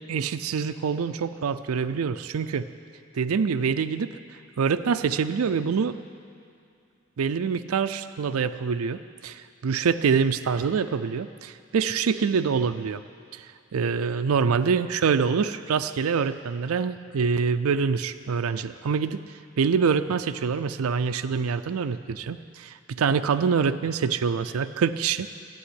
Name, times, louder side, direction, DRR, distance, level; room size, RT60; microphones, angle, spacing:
voice 1, 0.1-2.7 3.1-4.2 4.6-6.0 7.2-13.0 13.3-13.5 13.7-19.2 19.6-25.3, right 6 dB, 90° right, 10 dB, 0.4 m, -25 dB
13.0 x 8.5 x 9.9 m, 2.5 s
head